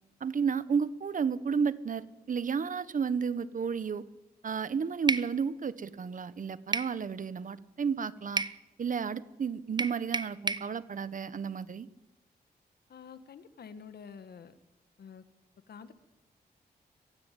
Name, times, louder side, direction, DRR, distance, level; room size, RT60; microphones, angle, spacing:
voice 1, 0.2-4.0 4.4-8.4 8.8-11.9, right 6 dB, 50° right, 15 dB, 1.2 m, -32 dB
sound 1, 5.1-5.3 6.7-7.0 8.4-8.6 9.8-10.7, right 3 dB, 25° right, 0.9 m, -30 dB
voice 2, 12.9-14.6 15.0-15.2 15.7-15.9, left 6 dB, 70° left, 11 dB, 1.8 m, -48 dB
23.5 x 16.0 x 9.3 m, 1.0 s
cardioid pair, 90°, 17 cm